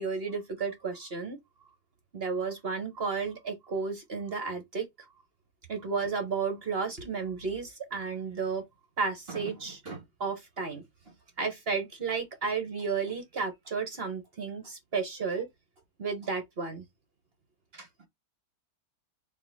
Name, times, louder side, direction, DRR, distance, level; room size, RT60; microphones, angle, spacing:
voice 1, 0.0-1.4 2.1-4.9 5.7-8.7 9.0-10.8 11.4-15.5 16.0-16.8 17.7-17.9, right 5 dB, 40° right, 1.0 m, -33 dB
4.6 x 2.7 x 3.9 m
omnidirectional pair, 1.9 m